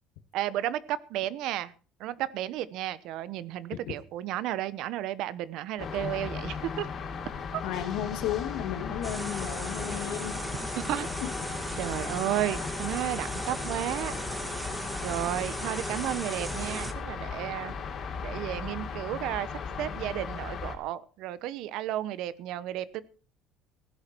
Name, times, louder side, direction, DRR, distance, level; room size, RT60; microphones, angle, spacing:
voice 1, 0.3-1.7 2.0-6.9 7.5-7.6 10.8-11.1 11.8-14.1 15.0-17.7 18.2-19.5 19.8-23.0, right 13 dB, 65° right, 17 dB, 1.0 m, -33 dB
sound 1, 5.8-20.8, left 6 dB, 40° left, 3.2 m, -37 dB
voice 2, 7.6-10.4 11.2-11.3, left 11 dB, 85° left, 8 dB, 2.1 m, -34 dB
sound 2, 9.0-16.9, right 2 dB, 10° right, 1.5 m, -37 dB
16.0 x 11.5 x 4.5 m, 0.38 s
cardioid pair, 135°, 0 cm